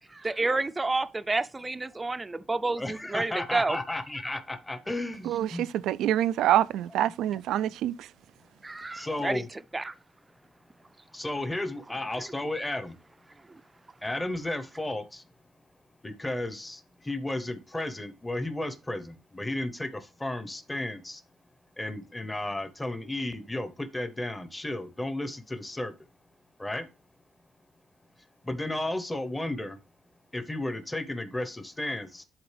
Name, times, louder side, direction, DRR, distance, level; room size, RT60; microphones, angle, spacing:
voice 1, 0.1-3.8 8.6-9.4 9.7-9.9, right 3 dB, 20° right, 0.5 m, -29 dB
voice 2, 2.8-5.7 8.9-9.5 11.1-13.0 14.0-15.3 16.0-21.2 21.8-25.9 26.6-26.9 28.4-29.8 30.3-32.2, left 1 dB, 15° left, 1.0 m, -33 dB
voice 3, 5.3-8.1, right 12 dB, 85° right, 0.3 m, -26 dB
10.5 x 4.0 x 3.3 m
cardioid pair, 90°, 0 cm